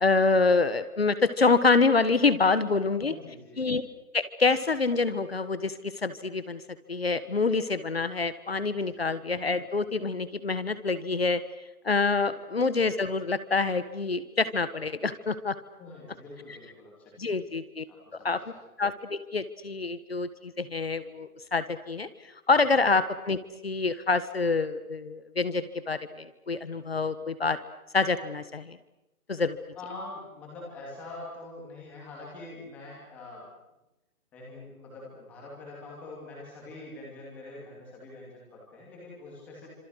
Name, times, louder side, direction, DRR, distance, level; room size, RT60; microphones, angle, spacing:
voice 1, 0.0-3.1 3.6-3.8 4.1-6.6 6.9-11.4 11.8-15.6 17.2-17.8 18.2-18.4 18.8-22.1 22.5-27.6 27.9-28.8 29.3-29.6, left 4 dB, 45° left, 13 dB, 1.5 m, -26 dB
voice 2, 3.0-3.7 8.9-9.0 12.3-12.4 15.8-17.3 17.9-18.4 22.7-22.8 29.7-33.5 34.3-39.7, left 2 dB, 5° left, -4 dB, 2.6 m, -44 dB
27.5 x 26.5 x 6.4 m, 0.94 s
hypercardioid pair, 180°, 43 cm